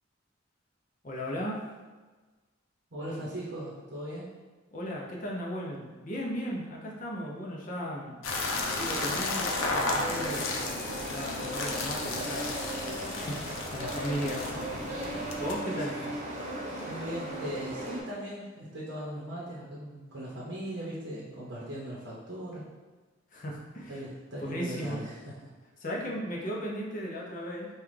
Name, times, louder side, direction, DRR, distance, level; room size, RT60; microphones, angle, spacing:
voice 1, 1.0-1.6 4.7-8.1 8.8-10.5 11.1-12.6 13.1-14.5 15.1-16.0 23.3-24.0 24.3-25.0 25.8-27.7, equal, 40° left, -3 dB, 0.6 m, -36 dB
voice 2, 2.9-4.3 14.5-14.8 16.9-22.7 23.9-25.5, right 1 dB, 65° right, -6 dB, 0.8 m, -39 dB
sound 1, 8.2-15.5, left 3 dB, 90° left, 0.6 m, -33 dB
sound 2, 9.8-18.0, right 1 dB, 35° right, 0.7 m, -37 dB
5.5 x 2.3 x 3.2 m, 1.3 s
head